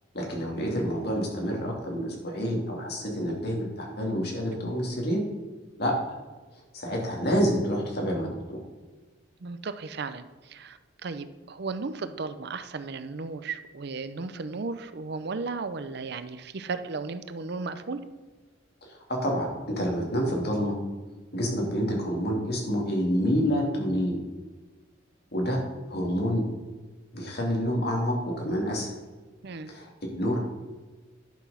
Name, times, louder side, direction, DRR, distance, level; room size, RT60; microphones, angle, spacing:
voice 1, 0.1-5.2 5.8-6.2 6.7-8.6 18.9-20.7 21.3-24.2 25.3-25.6 25.9-26.4 27.1-28.9 29.7-30.4, equal, 55° left, 0 dB, 2.6 m, -28 dB
voice 2, 9.4-18.0 29.4-29.7, right 4 dB, 60° right, 12 dB, 0.6 m, -35 dB
10.5 x 6.1 x 5.7 m, 1.3 s
head